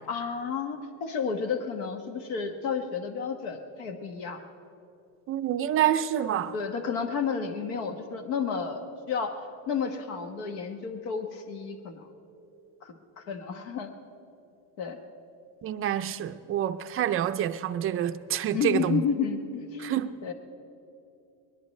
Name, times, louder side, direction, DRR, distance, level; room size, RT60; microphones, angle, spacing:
voice 1, 0.1-4.4 6.5-8.8 9.1-12.1 12.8-13.9 14.8-15.0 18.5-20.3, left 6 dB, 80° left, 1.4 m, -31 dB
voice 2, 5.3-6.5 15.6-19.0 19.8-20.1, right 10 dB, 35° right, 0.4 m, -27 dB
21.5 x 20.0 x 3.2 m
cardioid pair, 140°, 43 cm